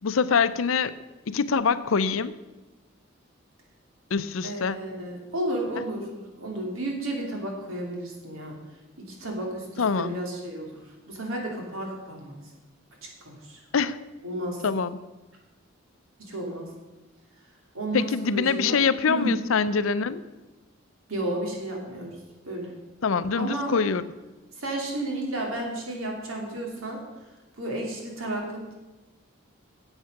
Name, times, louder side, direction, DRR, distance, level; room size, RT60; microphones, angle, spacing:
voice 1, 0.0-0.9 1.3-2.3 4.1-4.8 9.8-10.2 13.7-14.0 14.6-15.0 17.9-20.2 23.0-24.0, left 5 dB, 75° left, 14 dB, 0.5 m, -24 dB
voice 2, 4.4-8.6 9.0-10.8 11.1-12.4 13.0-13.6 14.2-14.6 16.2-16.7 17.7-18.8 19.1-19.4 21.1-22.2 22.4-22.7 23.3-23.7 24.6-27.0 27.6-28.7, right 1 dB, 85° right, 0 dB, 2.9 m, -32 dB
9.3 x 8.1 x 6.6 m, 1.1 s
head